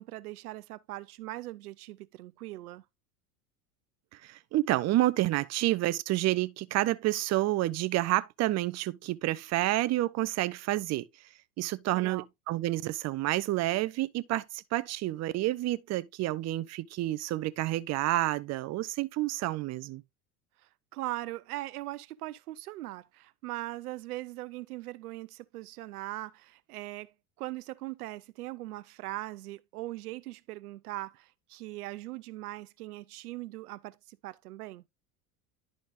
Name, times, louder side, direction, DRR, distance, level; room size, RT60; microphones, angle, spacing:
voice 1, 0.0-2.8 11.9-12.2 20.9-34.8, right 17 dB, 85° right, 0.5 m, -40 dB
voice 2, 4.2-11.1 11.6-20.0, right 16 dB, 35° right, 0.6 m, -29 dB
11.0 x 5.2 x 2.5 m
hypercardioid pair, 85°, 44 cm